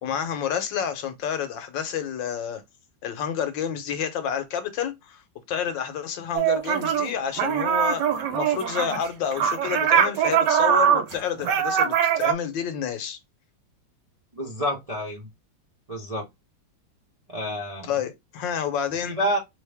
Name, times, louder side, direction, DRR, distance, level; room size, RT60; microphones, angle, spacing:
voice 1, 0.0-2.6 3.0-5.2 5.5-13.2 17.8-19.2, left 8 dB, 70° left, 1.4 m, -29 dB
sound 1, 6.4-7.1 7.4-12.3, right 8 dB, 70° right, 1.2 m, -22 dB
voice 2, 14.3-15.3 15.9-16.3 17.3-17.9 19.2-19.4, equal, 35° right, 0.5 m, -28 dB
3.8 x 3.2 x 3.4 m
omnidirectional pair, 2.2 m